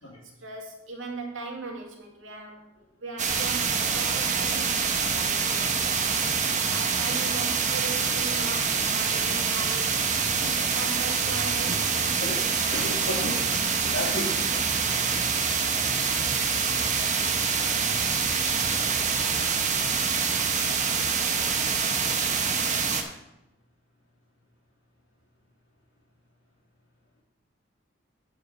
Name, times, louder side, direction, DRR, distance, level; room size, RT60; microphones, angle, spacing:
voice 1, 0.4-10.2 10.7-12.7, right 3 dB, 80° right, 0 dB, 2.2 m, -40 dB
sound 1, 3.2-23.0, right 5 dB, 40° right, 1.0 m, -26 dB
voice 2, 12.7-13.4 13.8-14.5, left 1 dB, 85° left, -8 dB, 2.4 m, -33 dB
9.1 x 4.9 x 6.8 m, 0.89 s
head